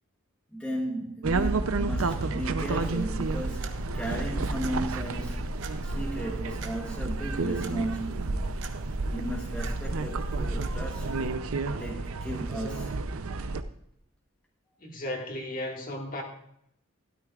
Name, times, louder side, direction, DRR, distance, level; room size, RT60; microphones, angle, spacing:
voice 1, 0.5-8.5 9.1-11.2 11.8-13.0, right 1 dB, 5° left, 1.1 m, -36 dB
sound 1, 1.2-13.6, right 3 dB, 85° right, 0.6 m, -31 dB
sound 2, 3.0-11.3, right 1 dB, 60° right, 0.9 m, -38 dB
voice 2, 14.8-16.2, left 1 dB, 40° left, 1.9 m, -35 dB
13.0 x 12.5 x 2.4 m
head